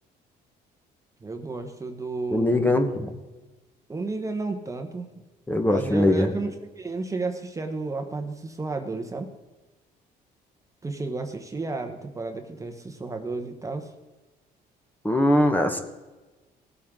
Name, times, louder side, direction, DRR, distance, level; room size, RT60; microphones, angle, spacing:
voice 1, 1.2-3.0 3.9-5.1 5.6-9.3 10.8-13.9, right 3 dB, 20° right, 5 dB, 1.1 m, -32 dB
voice 2, 2.3-3.1 5.5-6.3 15.0-15.8, left 1 dB, 10° left, 6 dB, 1.2 m, -21 dB
18.5 x 8.5 x 3.7 m, 1.2 s
cardioid pair, 110°, 17 cm